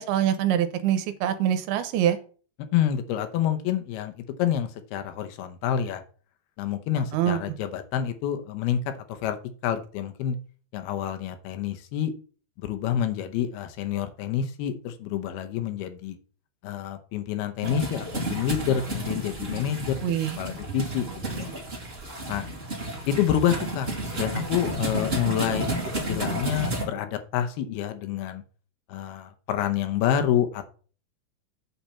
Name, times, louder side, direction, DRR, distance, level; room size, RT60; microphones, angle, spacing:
voice 1, 0.0-2.2 6.9-7.4 20.0-20.4, right 10 dB, 80° right, 9 dB, 2.8 m, -24 dB
voice 2, 2.7-4.1 4.4-6.0 6.6-9.4 9.6-10.4 10.7-12.1 12.6-16.2 16.6-21.5 22.3-22.5 23.1-23.9 24.2-25.7 26.1-28.4 28.9-30.6, left 10 dB, 80° left, 8 dB, 2.8 m, -28 dB
sound 1, 17.6-26.8, right 1 dB, 20° right, 2.0 m, -31 dB
8.5 x 4.3 x 7.0 m, 0.41 s
omnidirectional pair, 4.5 m